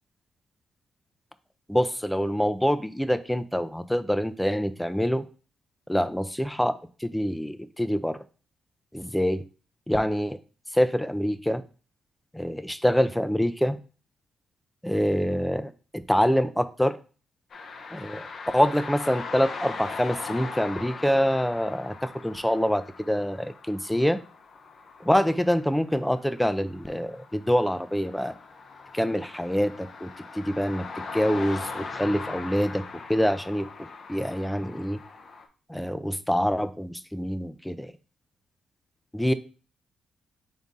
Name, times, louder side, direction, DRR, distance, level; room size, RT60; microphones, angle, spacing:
voice 1, 1.7-5.3 5.9-8.2 8.9-9.4 9.9-10.4 10.7-11.6 12.3-13.8 14.8-17.0 17.9-18.3 18.5-24.2 25.0-28.3 28.9-30.8 31.1-32.8 33.1-33.7 34.1-35.0 35.7-37.9 39.1-39.3, equal, 5° left, 12 dB, 0.5 m, -25 dB
sound 1, 17.5-35.5, left 4 dB, 60° left, 0.7 m, -40 dB
4.0 x 3.6 x 3.7 m, 0.37 s
supercardioid pair, 60°, 0 cm